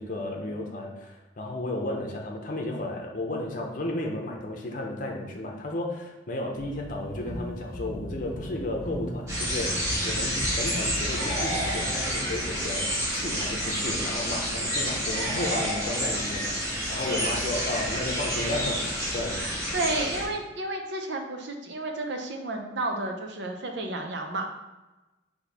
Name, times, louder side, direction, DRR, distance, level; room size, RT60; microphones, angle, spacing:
voice 1, 0.0-19.4, left 1 dB, 45° left, 0 dB, 0.7 m, -33 dB
sound 1, 6.5-14.7, equal, 15° left, 1.0 m, -39 dB
sound 2, 9.3-20.2, equal, 15° right, 1.3 m, -29 dB
sound 3, 11.1-12.5 15.1-16.5, right 1 dB, 35° right, 0.8 m, -35 dB
voice 2, 19.3-24.6, right 2 dB, 65° right, 3 dB, 0.6 m, -32 dB
4.3 x 2.8 x 4.0 m, 1.1 s
head